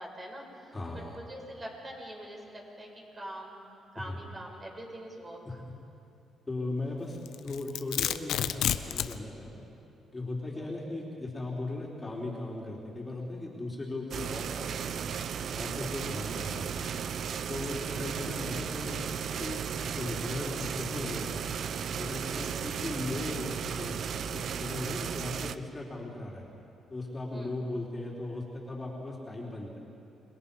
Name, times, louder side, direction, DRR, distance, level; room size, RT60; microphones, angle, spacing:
voice 1, 0.0-0.7 1.1-2.9 3.1-3.7 3.9-5.4 10.6-10.7 17.9-18.0 22.3-22.5 27.3-27.6, right 1 dB, 25° right, -1 dB, 5.9 m, -44 dB
voice 2, 0.7-1.2 4.0-4.2 5.4-5.5 6.5-7.2 7.4-9.6 10.1-15.1 15.5-16.9 17.5-21.4 21.9-26.4 26.9-29.8, left 2 dB, 20° left, -3 dB, 3.9 m, -38 dB
Domestic sounds home sounds, 7.3-9.2, left 11 dB, 80° left, 0.8 m, -30 dB
sound 1, 14.1-25.6, right 7 dB, 60° right, 0.7 m, -35 dB
29.0 x 21.0 x 5.6 m, 2.7 s
cardioid pair, 90°, 0 cm